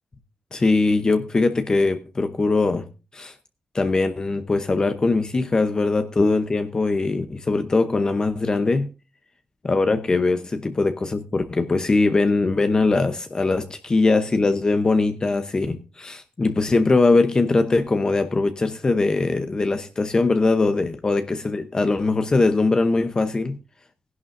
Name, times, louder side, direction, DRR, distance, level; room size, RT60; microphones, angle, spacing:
voice 1, 0.5-2.9 3.1-3.3 3.7-8.9 9.6-23.6, left 3 dB, 25° left, 0.8 m, -21 dB
16.5 x 11.0 x 2.6 m
wide cardioid pair, 145°, 3 cm